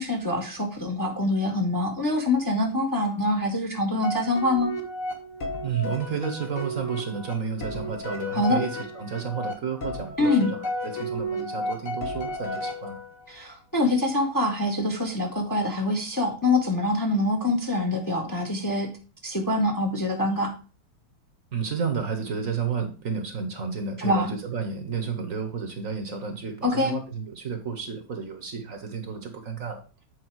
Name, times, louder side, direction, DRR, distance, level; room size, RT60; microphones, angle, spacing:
voice 1, 0.0-4.7 8.3-8.6 10.2-10.5 13.3-18.9 19.2-20.5 24.0-24.3 26.6-27.0, left 2 dB, 15° left, 2 dB, 1.1 m, -25 dB
sound 1, 4.0-13.3, left 1 dB, 50° left, 1.6 m, -33 dB
voice 2, 5.6-13.0 21.5-29.8, right 6 dB, 55° right, 6 dB, 1.5 m, -31 dB
8.2 x 4.7 x 4.6 m, 0.35 s
omnidirectional pair, 1.9 m